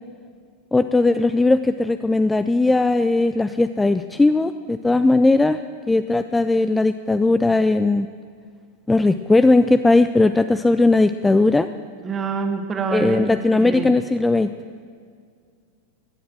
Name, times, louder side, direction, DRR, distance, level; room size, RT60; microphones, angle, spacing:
voice 1, 0.7-5.6 5.9-8.1 8.9-11.7 12.9-14.5, left 2 dB, 10° left, 11 dB, 0.3 m, -18 dB
voice 2, 12.0-13.9, right 4 dB, 20° right, 5 dB, 1.5 m, -26 dB
16.5 x 10.0 x 6.3 m, 2.1 s
figure-of-eight pair, 90°, 0 cm